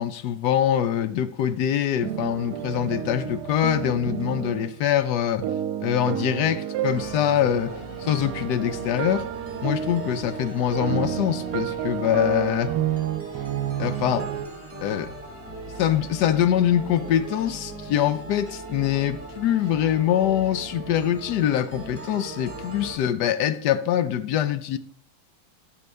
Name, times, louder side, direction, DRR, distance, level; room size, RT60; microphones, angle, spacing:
voice 1, 0.0-5.5 5.8-9.3 9.6-12.7 13.8-14.3 14.8-15.1 15.8-24.8, left 10 dB, 85° left, 1.3 m, -24 dB
sound 1, 2.0-4.7 5.4-14.5, right 10 dB, 80° right, 1.2 m, -30 dB
sound 2, 7.0-23.0, right 2 dB, 10° right, 1.6 m, -40 dB
13.5 x 5.3 x 3.3 m
omnidirectional pair, 1.8 m